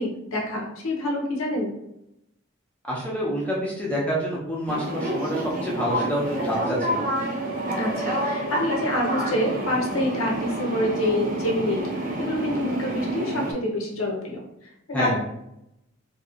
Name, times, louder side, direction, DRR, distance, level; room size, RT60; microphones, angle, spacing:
voice 1, 0.0-1.7 7.8-11.9 12.2-15.2, left 1 dB, 85° left, 0 dB, 0.8 m, -27 dB
voice 2, 2.9-7.1 14.9-15.2, equal, 5° left, -6 dB, 0.8 m, -27 dB
sound 1, 4.7-13.5, right 1 dB, 45° right, 0.5 m, -28 dB
3.0 x 2.7 x 2.4 m, 0.82 s
head